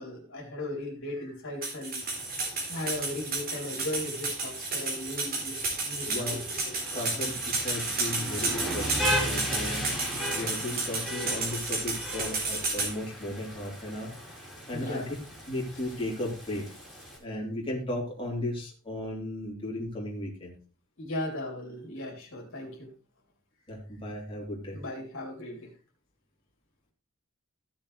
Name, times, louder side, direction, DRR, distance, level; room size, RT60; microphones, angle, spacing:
voice 1, 0.0-2.1 2.7-6.4 6.6-6.7 7.6-7.7 14.7-15.1 21.0-22.9 24.7-25.7, left 1 dB, 65° left, 0 dB, 3.1 m, -37 dB
sound 1, 1.6-12.9, right 3 dB, 45° right, 3.8 m, -32 dB
Rain, 2.0-17.2, equal, 5° right, 4.1 m, -37 dB
voice 2, 6.0-6.4 6.9-9.9 10.3-14.1 14.7-15.1 15.5-16.7 17.2-20.5 23.7-24.8, left 1 dB, 25° left, -4 dB, 3.3 m, -35 dB
15.0 x 7.1 x 3.3 m, 0.35 s
head